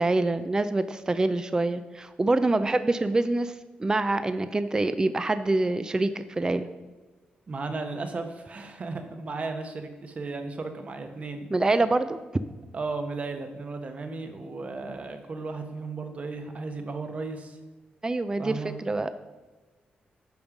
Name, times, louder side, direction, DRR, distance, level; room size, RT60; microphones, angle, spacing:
voice 1, 0.0-3.5 3.8-6.7 11.5-12.2 18.0-19.1, right 2 dB, 20° right, 11 dB, 0.4 m, -25 dB
voice 2, 7.5-11.5 12.7-17.6 18.4-18.7, right 3 dB, 45° right, 6 dB, 1.0 m, -35 dB
10.5 x 3.7 x 6.0 m, 1.2 s
cardioid pair, 90°, 3 cm